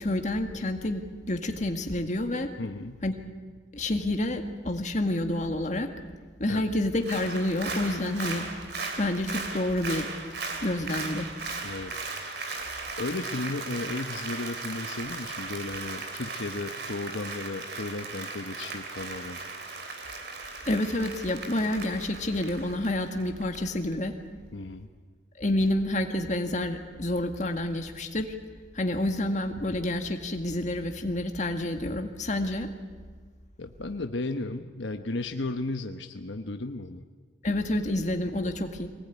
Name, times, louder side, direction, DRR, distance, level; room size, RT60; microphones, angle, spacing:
voice 1, 0.0-2.5 3.0-3.1 3.7-5.9 6.4-8.4 9.0-10.1 10.6-11.3 20.7-24.1 25.4-28.3 28.8-32.7 37.4-38.9, left 1 dB, 40° left, 5 dB, 1.9 m, -28 dB
voice 2, 2.6-3.0 6.5-6.7 11.6-12.1 13.0-19.4 24.5-24.9 33.6-37.0 38.4-38.5, left 2 dB, 75° left, 7 dB, 1.1 m, -34 dB
Applause, 6.9-23.6 23.9-24.0, right 3 dB, 60° right, 3.1 m, -37 dB
23.0 x 19.5 x 9.4 m, 1.5 s
head